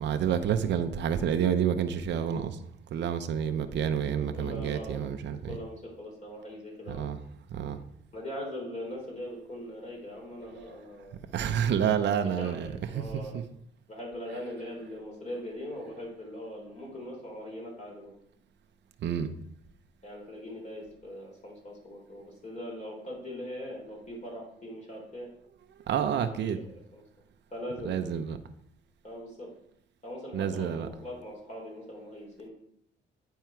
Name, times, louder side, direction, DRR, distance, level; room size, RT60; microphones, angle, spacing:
voice 1, 0.0-2.6 2.9-5.6 6.9-7.2 7.5-7.8 11.3-13.4 19.0-19.3 25.9-26.6 27.8-28.4 30.3-30.9, right 8 dB, 65° right, 8 dB, 0.7 m, -29 dB
voice 2, 4.1-5.0 5.5-7.1 8.1-11.2 11.8-13.4 13.9-18.1 20.0-25.3 26.1-26.4 26.7-27.0 27.5-28.1 29.0-29.5 30.0-32.5, left 1 dB, 35° left, -1 dB, 3.6 m, -41 dB
9.2 x 4.6 x 4.5 m, 0.70 s
cardioid pair, 90°, 20 cm